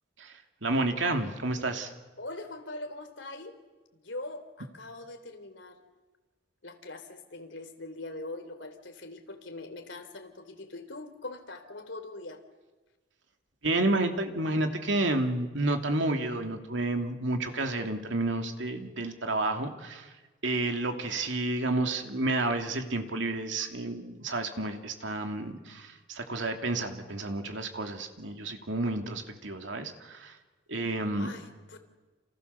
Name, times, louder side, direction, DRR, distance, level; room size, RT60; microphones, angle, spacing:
voice 1, 0.2-1.9 13.6-20.1 20.4-30.4 30.7-31.3, right 2 dB, 70° right, 5 dB, 2.8 m, -30 dB
voice 2, 2.2-3.5 3.9-5.8 6.6-12.4 30.9-31.8, left 2 dB, 65° left, 7 dB, 3.4 m, -42 dB
30.0 x 28.0 x 7.0 m, 1.2 s
head